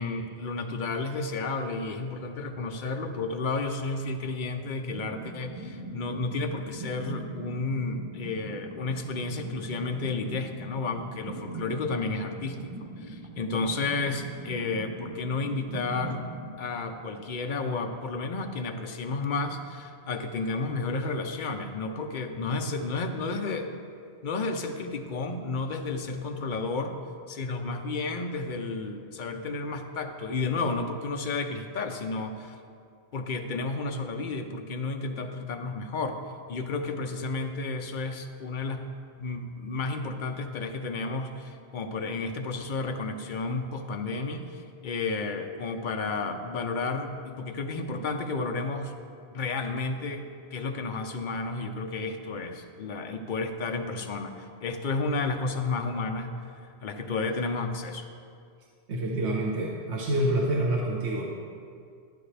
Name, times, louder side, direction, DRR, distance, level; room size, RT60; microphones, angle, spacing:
voice 1, 0.0-12.7 13.1-16.3 16.6-23.7 24.2-27.0 27.3-32.6 33.1-36.2 36.5-38.9 39.2-48.9 49.3-56.3 56.8-58.1, left 3 dB, 50° left, 5 dB, 0.8 m, -32 dB
sound 1, 4.9-17.6, right 2 dB, 35° right, 0.9 m, -41 dB
voice 2, 58.9-61.3, right 1 dB, 80° right, -2 dB, 1.2 m, -27 dB
11.5 x 9.9 x 3.3 m, 2.3 s
omnidirectional pair, 1.1 m